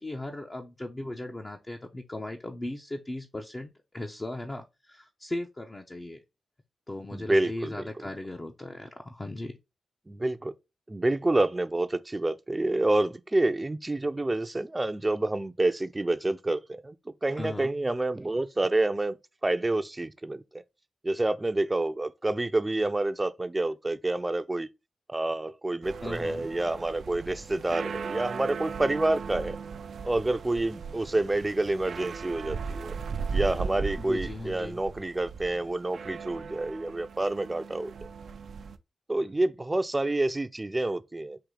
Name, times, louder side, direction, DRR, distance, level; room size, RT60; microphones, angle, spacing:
voice 1, 0.0-6.2 6.9-9.6 17.4-17.7 26.0-26.5 34.0-34.8, left 1 dB, 30° left, 0.7 m, -37 dB
voice 2, 7.1-7.8 10.1-10.5 10.9-19.2 19.4-20.6 21.0-24.7 25.1-29.6 30.0-32.9 33.3-37.9 39.1-41.4, right 2 dB, 25° right, 0.5 m, -28 dB
sound 1, 25.8-38.8, right 5 dB, 75° right, 0.4 m, -37 dB
4.8 x 2.7 x 3.7 m
cardioid pair, 50°, 0 cm